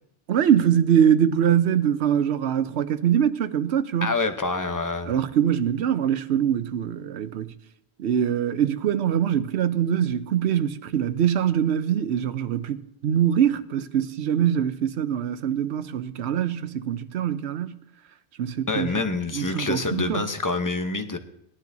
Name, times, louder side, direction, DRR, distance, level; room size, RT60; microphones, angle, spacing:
voice 1, 0.3-4.1 5.1-7.5 8.0-17.8 18.4-18.9 19.3-20.3, right 9 dB, 80° right, 0.9 m, -23 dB
voice 2, 4.0-5.1 18.7-21.2, left 3 dB, 20° left, 0.7 m, -26 dB
20.0 x 12.0 x 2.7 m
omnidirectional pair, 1.1 m